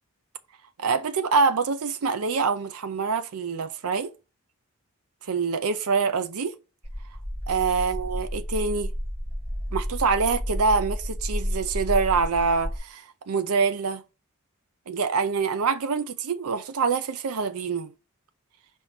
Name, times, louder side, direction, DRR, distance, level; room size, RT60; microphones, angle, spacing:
voice 1, 0.8-4.1 5.3-6.6 7.5-8.9 9.7-14.0 14.9-17.9, right 5 dB, 85° right, 0.5 m, -25 dB
sound 1, 6.8-12.8, equal, 25° right, 2.3 m, -31 dB
4.9 x 3.7 x 5.7 m
head